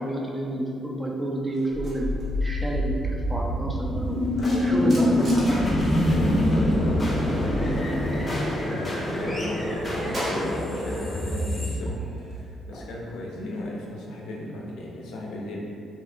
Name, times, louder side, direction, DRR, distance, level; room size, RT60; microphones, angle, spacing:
voice 1, 0.0-2.1 2.4-4.2 4.6-5.8, right 1 dB, 15° right, -1 dB, 0.4 m, -29 dB
sound 1, 1.5-6.9 7.1-8.8 9.1-11.2 11.6-14.3, equal, 45° right, 0.8 m, -41 dB
sound 2, 1.7-12.8, left 1 dB, 30° left, 0.6 m, -25 dB
voice 2, 4.4-5.2 6.0-12.0 12.3-15.6, left 1 dB, 85° left, -2 dB, 0.4 m, -36 dB
2.7 x 2.4 x 2.3 m, 2.4 s
cardioid pair, 90°, 0 cm